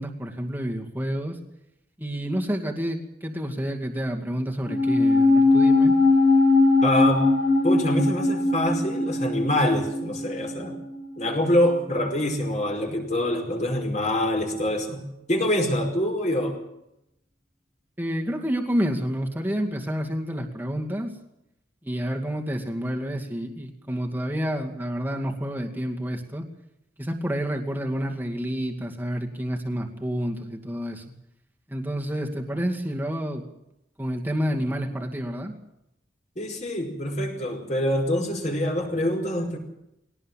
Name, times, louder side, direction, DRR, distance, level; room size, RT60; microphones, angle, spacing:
voice 1, 0.0-1.4 2.0-5.9 18.0-21.1 21.8-26.4 27.0-31.0 31.7-33.4 34.0-35.5, equal, 10° right, 2 dB, 2.4 m, -29 dB
sound 1, 4.7-11.2 11.5-11.6, left 2 dB, 85° left, 7.0 m, -20 dB
voice 2, 6.8-7.3 7.6-10.8 11.2-15.0 15.3-16.6 36.3-39.6, left 1 dB, 40° left, 2 dB, 4.9 m, -25 dB
21.0 x 18.0 x 7.5 m, 0.83 s
head